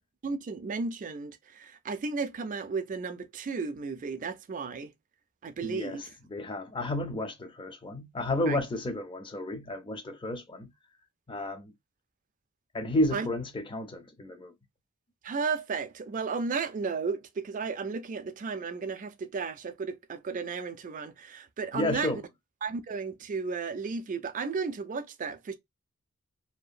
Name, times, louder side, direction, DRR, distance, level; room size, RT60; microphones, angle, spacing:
voice 1, 0.2-4.9 5.4-6.0 8.5-8.6 13.1-13.3 15.2-22.1 22.6-25.5, right 4 dB, 35° right, 0.3 m, -34 dB
voice 2, 5.6-10.7 11.3-11.7 12.7-14.5 21.7-22.2, left 1 dB, 20° left, 0.5 m, -32 dB
2.7 x 2.1 x 2.4 m
head